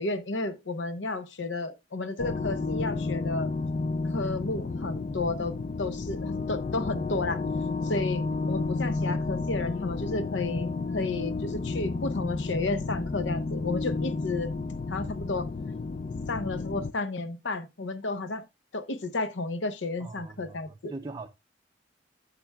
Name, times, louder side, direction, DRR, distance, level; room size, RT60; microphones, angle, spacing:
voice 1, 0.0-3.5 4.1-7.4 7.8-14.5 14.9-15.5 16.3-18.5 18.7-20.9, left 2 dB, 90° left, 0.8 m, -32 dB
sound 1, 2.2-16.9, left 3 dB, 40° left, 0.4 m, -31 dB
voice 2, 20.0-21.3, right 3 dB, 25° right, 0.4 m, -41 dB
11.5 x 6.8 x 2.2 m
head